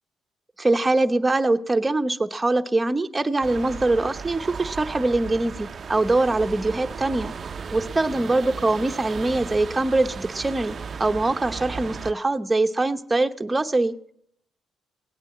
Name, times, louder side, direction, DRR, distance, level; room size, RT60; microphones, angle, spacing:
voice 1, 0.6-7.3 7.7-13.9, right 2 dB, 20° right, 7 dB, 0.9 m, -23 dB
sound 1, 3.4-12.1, right 6 dB, 45° right, 0.6 m, -35 dB
17.5 x 9.0 x 7.8 m, 0.69 s
cardioid pair, 90°, 0 cm